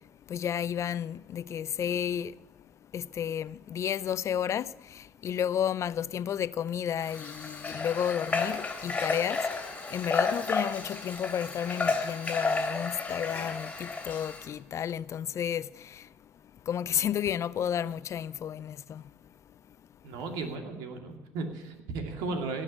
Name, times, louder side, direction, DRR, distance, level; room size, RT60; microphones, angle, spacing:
voice 1, 0.3-2.4 2.9-16.1 16.7-19.0, left 9 dB, 45° left, 0.4 m, -32 dB
Water / Water tap faucet, 7.0-14.5, left 3 dB, 20° left, 3.2 m, -32 dB
voice 2, 20.0-22.6, right 3 dB, 75° right, 2.5 m, -35 dB
17.5 x 6.5 x 8.7 m
supercardioid pair, 80°, 7 cm